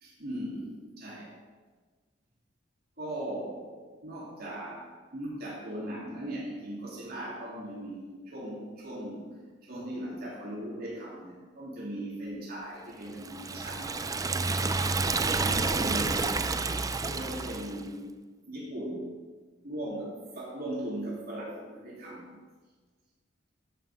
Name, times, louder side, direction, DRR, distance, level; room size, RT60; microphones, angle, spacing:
voice 1, 0.0-1.3 3.0-4.8 5.1-9.2 9.6-14.1 15.2-16.3 17.0-18.1 18.4-19.1 19.6-22.3, right 1 dB, 55° right, -6 dB, 3.1 m, -38 dB
Liquid, 13.2-17.8, right 3 dB, 20° right, 0.4 m, -29 dB
13.5 x 5.8 x 5.2 m, 1.4 s
head